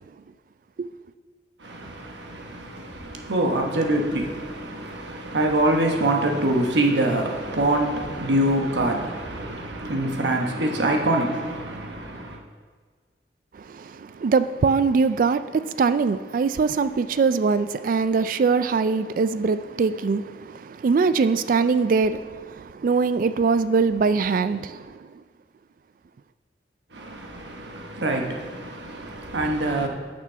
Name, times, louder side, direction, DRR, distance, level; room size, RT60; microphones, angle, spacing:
voice 1, 1.6-12.4 26.9-29.9, right 1 dB, 75° right, 1.1 m, -25 dB
voice 2, 13.7-24.8, right 4 dB, 50° right, 0.3 m, -22 dB
7.0 x 6.1 x 5.8 m
head